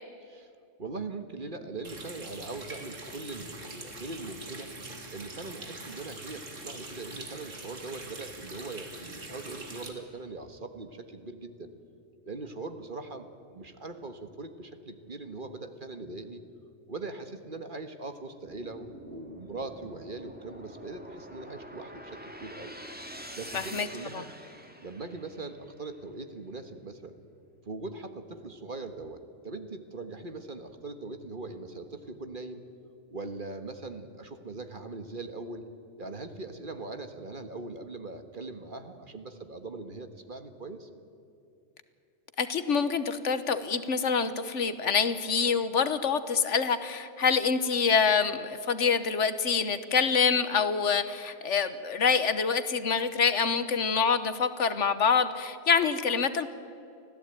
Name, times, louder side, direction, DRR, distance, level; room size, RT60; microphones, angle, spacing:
voice 1, 0.8-4.7 5.1-11.7 12.3-13.3 13.5-16.4 16.9-22.8 23.4-24.3 24.8-27.1 27.6-32.6 33.1-35.7 36.0-40.9, right 3 dB, 45° right, 8 dB, 1.6 m, -41 dB
Water tap faucet, 1.8-9.9, right 2 dB, 90° right, 2.9 m, -43 dB
sound 1, 18.4-25.7, equal, 5° right, 2.0 m, -46 dB
voice 2, 23.5-23.9 24.1-24.2 42.4-56.5, left 6 dB, 75° left, 12 dB, 1.5 m, -26 dB
25.0 x 16.0 x 9.1 m, 2.7 s
omnidirectional pair, 1.3 m